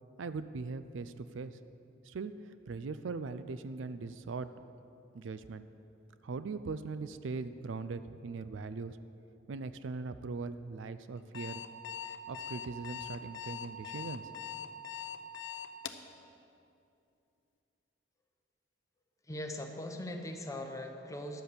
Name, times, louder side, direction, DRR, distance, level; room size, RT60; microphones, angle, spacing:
voice 1, 0.2-1.6 2.1-2.3 2.7-4.5 5.1-5.7 6.2-9.0 9.5-11.6 12.3-14.4, right 4 dB, 75° right, 13 dB, 0.4 m, -40 dB
Alarm, 11.2-16.1, left 9 dB, 70° left, 0.6 m, -41 dB
voice 2, 19.3-21.4, left 1 dB, 15° left, 4 dB, 0.8 m, -40 dB
11.0 x 8.0 x 6.7 m, 2.6 s
head